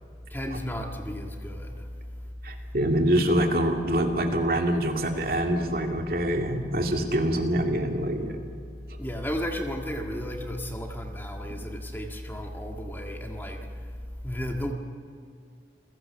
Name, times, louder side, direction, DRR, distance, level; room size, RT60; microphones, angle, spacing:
voice 1, 0.3-1.9 9.0-14.7, equal, 10° left, 3 dB, 1.7 m, -33 dB
voice 2, 2.4-8.4, right 1 dB, 55° right, 3 dB, 2.5 m, -25 dB
28.0 x 16.0 x 7.0 m, 2.4 s
head